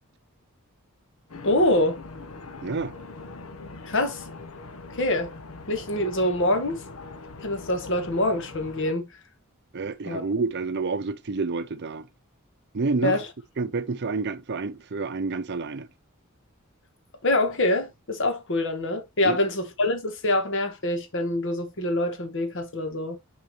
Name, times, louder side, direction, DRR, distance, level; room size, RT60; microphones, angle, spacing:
sound 1, 1.3-8.9, left 3 dB, 85° left, 1.1 m, -42 dB
voice 1, 1.4-2.0 3.9-4.2 4.9-5.3 5.7-6.8 7.4-9.1 10.0-10.2 13.0-13.3 17.2-23.2, left 1 dB, 60° left, 1.6 m, -25 dB
voice 2, 2.6-2.9 9.7-12.1 12.7-13.2 13.6-15.9 19.2-19.4, right 4 dB, 55° right, 0.6 m, -29 dB
6.8 x 4.7 x 3.1 m
head